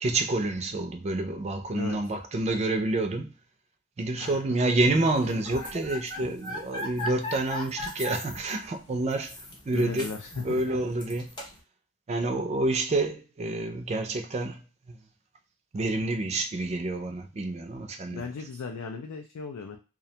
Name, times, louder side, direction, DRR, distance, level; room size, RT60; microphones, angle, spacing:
voice 1, 0.0-3.3 4.0-10.1 10.3-11.3 12.1-15.0 15.7-18.2, right 2 dB, 30° right, 0.3 m, -28 dB
sound 1, 5.1-11.6, left 1 dB, 20° left, 0.6 m, -38 dB
voice 2, 9.7-10.8 18.1-19.8, left 4 dB, 85° left, 0.4 m, -37 dB
2.4 x 2.1 x 2.7 m
head